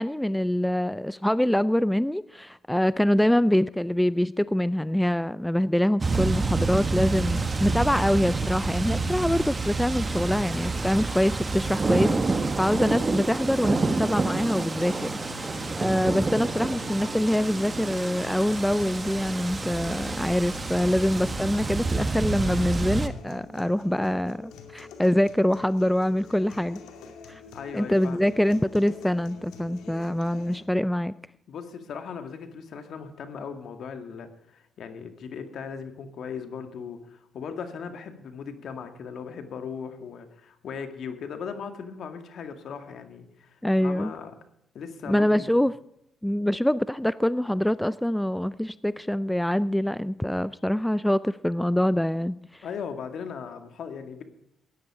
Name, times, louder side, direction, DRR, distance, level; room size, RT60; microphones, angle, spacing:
voice 1, 0.0-26.8 27.3-27.4 27.7-31.1 43.6-44.1 45.1-45.7 46.2-52.6, left 1 dB, 5° left, 17 dB, 0.4 m, -25 dB
sound 1, 6.0-23.1, right 3 dB, 25° right, 1.2 m, -28 dB
sound 2, 14.6-30.6, left 5 dB, 90° left, 2.3 m, -46 dB
voice 2, 27.5-28.3 31.5-44.3 44.7-45.6 52.6-54.2, left 6 dB, 65° left, 7 dB, 2.0 m, -38 dB
15.5 x 10.5 x 4.9 m, 0.79 s
cardioid pair, 90°, 0 cm